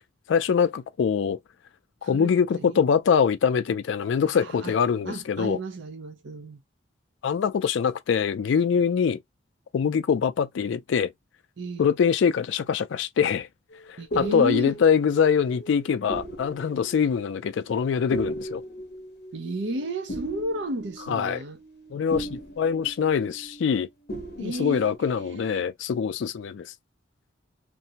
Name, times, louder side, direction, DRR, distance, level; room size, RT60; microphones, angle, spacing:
voice 1, 0.3-1.4 2.0-5.6 7.2-9.2 9.7-11.1 11.8-13.5 13.9-18.6 21.1-21.4 21.9-23.9 24.4-26.7, left 7 dB, 70° left, 0.3 m, -24 dB
voice 2, 2.1-2.8 4.2-4.8 5.0-6.6 11.6-11.9 14.0-14.8 19.3-21.6 24.4-25.6, right 1 dB, 65° right, 0.6 m, -33 dB
sound 1, 13.7-23.8 24.1-25.0, right 1 dB, 55° left, 0.7 m, -38 dB
2.6 x 2.0 x 2.7 m
head